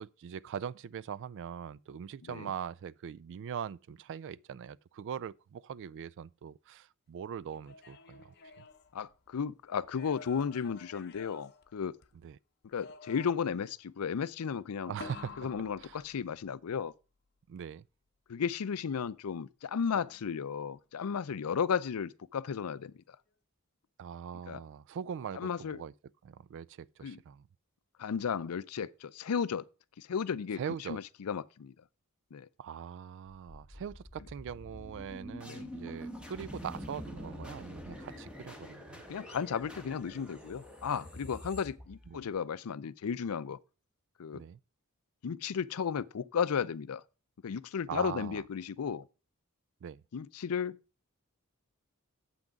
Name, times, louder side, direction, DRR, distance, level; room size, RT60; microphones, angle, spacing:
voice 1, 0.0-8.6 12.2-12.4 14.9-15.4 15.8-16.0 17.5-17.8 24.0-25.9 26.2-27.5 30.6-31.0 32.6-39.0 42.1-42.3 44.3-44.6 47.9-48.4 49.8-50.0, right 8 dB, 55° right, 0.3 m, -42 dB
sound 1, 7.5-9.4 9.8-12.3 12.7-13.7 15.0-16.6 20.0-20.6, left 5 dB, 50° left, 0.8 m, -51 dB
voice 2, 8.9-12.0 12.7-14.9 15.4-16.9 18.3-22.9 24.5-24.6 25.3-25.8 27.0-27.2 28.0-29.6 30.0-30.6 30.9-31.7 32.3-32.5 35.4-35.7 39.1-43.6 44.2-44.4 45.2-47.0 47.4-49.0 50.1-50.8, left 6 dB, 75° left, 0.5 m, -34 dB
sound 2, 33.5-42.4, equal, 5° right, 1.4 m, -46 dB
7.7 x 6.0 x 5.1 m
head